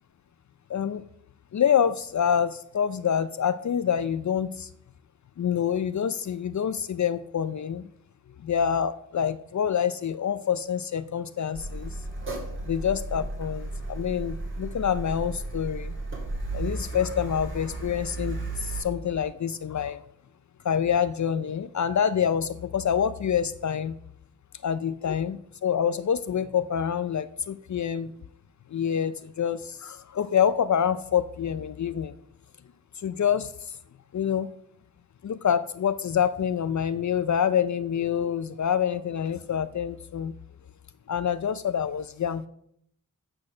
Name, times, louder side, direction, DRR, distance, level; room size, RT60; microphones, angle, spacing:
voice 1, 0.7-1.0 1.5-4.7 5.4-7.9 8.4-12.0 12.6-15.9 16.5-20.0 20.6-24.0 24.6-28.1 28.7-32.1 33.0-33.8 34.1-34.5 35.2-40.3 41.1-42.5, left 8 dB, 55° left, 14 dB, 0.5 m, -27 dB
Car, 11.5-18.8, right 2 dB, 35° right, 2.7 m, -34 dB
8.6 x 6.2 x 6.3 m, 0.71 s
wide cardioid pair, 105°, 35 cm